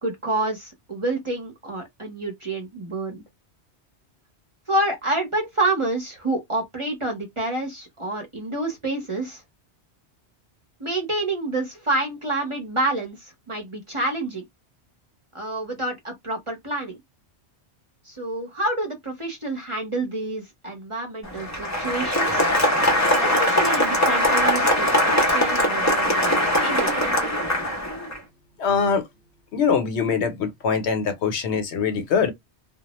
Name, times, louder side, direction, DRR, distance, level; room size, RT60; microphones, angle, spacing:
voice 1, 0.0-3.2 4.7-9.4 10.8-14.4 15.3-17.0 18.1-22.5 23.2-26.9, right 2 dB, 30° right, 0.7 m, -28 dB
Applause, 21.2-28.2, left 1 dB, 20° left, 0.5 m, -21 dB
voice 2, 28.6-29.0 29.5-32.3, left 6 dB, 75° left, 0.9 m, -23 dB
2.2 x 2.0 x 2.9 m
omnidirectional pair, 1.1 m